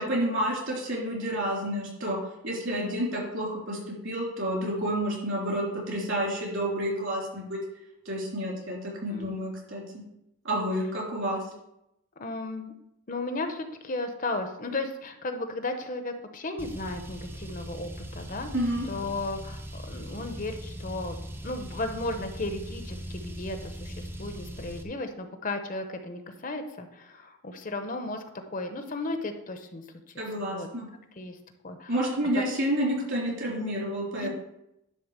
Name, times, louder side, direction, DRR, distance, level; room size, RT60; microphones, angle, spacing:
voice 1, 0.0-2.2 2.4-7.6 8.1-10.0 10.4-11.4 18.5-18.9 30.2-30.9 31.9-34.3, equal, 65° right, -4 dB, 3.7 m, -29 dB
voice 2, 12.2-12.7 13.1-18.5 18.9-30.7 31.2-31.4 31.6-31.9 32.3-32.4 34.2-34.3, left 2 dB, 40° left, 7 dB, 0.8 m, -35 dB
Car, 16.6-24.8, equal, 10° right, 0.6 m, -40 dB
11.0 x 3.8 x 6.6 m, 0.85 s
head